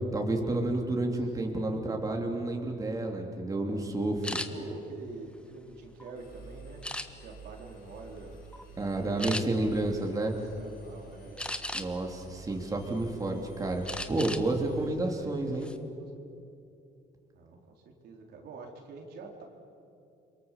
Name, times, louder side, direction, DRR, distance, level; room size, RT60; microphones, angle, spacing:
voice 1, 0.1-4.4 8.8-10.3 11.7-15.7, right 2 dB, 20° right, 1 dB, 3.4 m, -30 dB
sound 1, 4.2-4.5 5.1-6.1 6.8-7.4 7.9-8.2 8.5-8.7 9.2-9.4 11.4-12.1 12.6-13.3 13.9-14.5 14.8-15.0 15.4-15.8, left 1 dB, 5° left, 1.4 m, -36 dB
voice 2, 4.5-8.4 9.7-9.8 10.1-10.2 10.6-11.4 14.7-16.1 17.3-17.6 18.0-19.4, right 3 dB, 70° right, 1 dB, 4.0 m, -46 dB
Engine, 6.2-14.9, right 3 dB, 65° left, 5.7 m, -51 dB
29.0 x 23.0 x 7.5 m, 2.6 s
cardioid pair, 110°, 17 cm